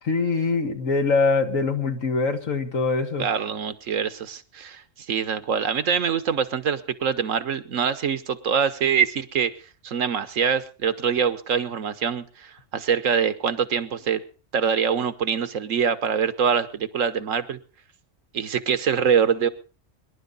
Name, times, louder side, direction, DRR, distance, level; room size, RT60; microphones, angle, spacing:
voice 1, 0.0-3.3, left 4 dB, 80° left, 6 dB, 2.1 m, -23 dB
voice 2, 3.2-9.5 9.8-14.2 14.5-17.6 18.3-19.5, right 7 dB, 75° right, 13 dB, 1.4 m, -24 dB
24.5 x 11.0 x 4.0 m, 0.36 s
omnidirectional pair, 1.4 m